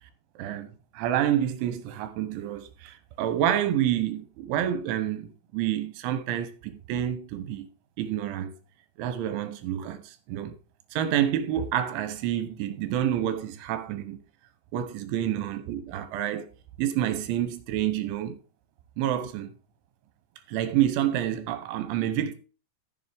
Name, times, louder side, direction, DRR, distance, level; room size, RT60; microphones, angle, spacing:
voice 1, 0.4-7.7 8.0-8.5 9.0-10.6 10.9-14.2 14.7-16.5 16.8-18.4 19.0-19.5 20.5-22.3, right 11 dB, 80° right, 3.4 m, -28 dB
13.5 x 7.2 x 3.5 m
omnidirectional pair, 5.6 m